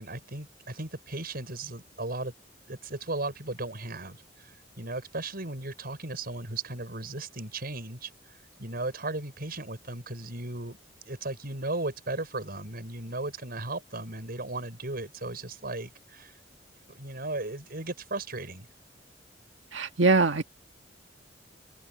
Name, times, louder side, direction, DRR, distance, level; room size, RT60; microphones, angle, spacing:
voice 1, 0.0-2.3 2.7-10.8 11.0-16.4 16.9-18.7, right 2 dB, 55° right, 6.3 m, -36 dB
voice 2, 19.7-20.4, right 3 dB, 90° right, 1.7 m, -22 dB
open air
head